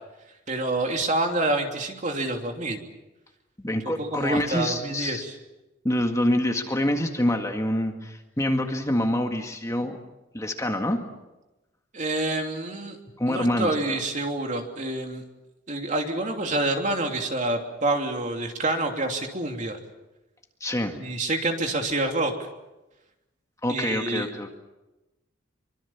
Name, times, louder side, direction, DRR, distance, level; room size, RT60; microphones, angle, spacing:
voice 1, 0.5-2.8 4.0-5.3 11.9-13.0 13.3-15.2 15.7-19.8 20.9-22.3 23.7-24.3, right 2 dB, 40° right, 3 dB, 3.0 m, -27 dB
voice 2, 3.6-5.3 5.8-10.0 10.3-11.0 13.2-14.0 20.6-21.0 23.6-24.5, left 1 dB, 15° left, 4 dB, 1.9 m, -26 dB
25.0 x 24.5 x 7.3 m, 1.0 s
head